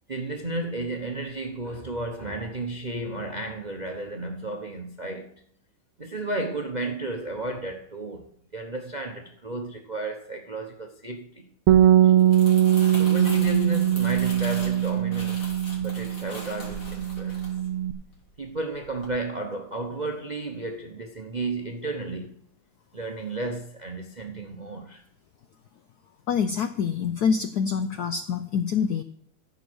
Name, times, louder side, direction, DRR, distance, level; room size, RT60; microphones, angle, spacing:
voice 1, 0.1-5.3 6.0-11.5 12.0-12.1 12.9-15.5 15.7-17.4 18.4-22.4 22.9-25.0, right 2 dB, 40° right, 0.6 m, -33 dB
Bass guitar, 11.7-17.9, right 11 dB, 90° right, 1.6 m, -21 dB
Crumpling crinkling, 12.0-18.4 18.8-19.1, left 1 dB, 50° left, 3.6 m, -41 dB
voice 2, 26.3-29.0, left 6 dB, 80° left, 0.9 m, -26 dB
15.0 x 5.4 x 6.2 m
omnidirectional pair, 2.4 m